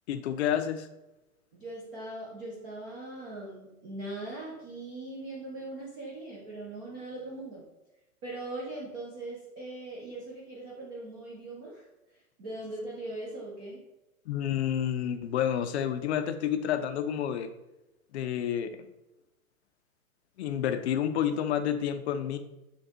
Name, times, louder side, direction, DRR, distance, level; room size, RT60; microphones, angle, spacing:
voice 1, 0.1-0.9 14.3-17.5 18.1-18.7 20.4-22.4, left 9 dB, 50° left, 9 dB, 0.5 m, -29 dB
voice 2, 1.5-7.6 8.2-11.8 12.4-13.8, right 2 dB, 15° right, -5 dB, 0.3 m, -40 dB
6.7 x 2.3 x 2.8 m, 0.97 s
figure-of-eight pair, 115°, 44 cm